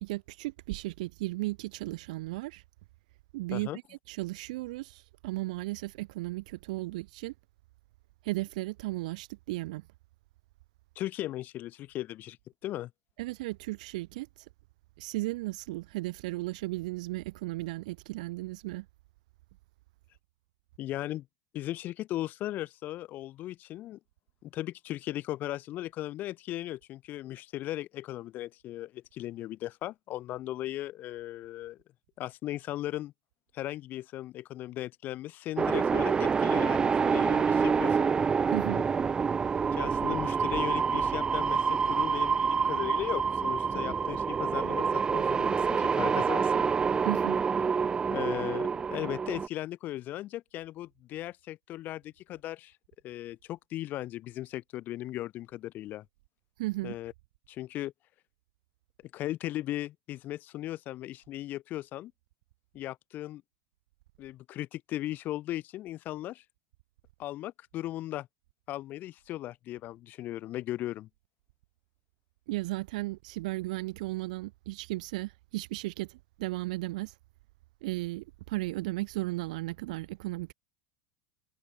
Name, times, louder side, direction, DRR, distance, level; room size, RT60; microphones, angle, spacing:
voice 1, 0.0-2.6 3.3-3.7 4.1-7.3 8.2-9.8 13.2-14.3 15.0-18.9 38.5-38.8 47.0-47.4 56.6-57.0 72.5-77.1 77.8-80.5, right 20 dB, 70° right, 0.9 m, -35 dB
voice 2, 11.0-12.4 12.6-12.9 20.8-21.3 21.5-24.0 24.4-31.8 32.2-33.1 33.5-38.1 39.7-46.7 48.1-52.7 53.0-56.0 56.8-57.1 57.5-57.9 59.1-62.1 62.7-63.4 64.2-66.4 67.2-68.3 68.7-71.1, left 14 dB, 45° left, 5.7 m, -37 dB
sound 1, 35.6-49.5, right 6 dB, 20° right, 0.4 m, -27 dB
hypercardioid pair, 95°, 4 cm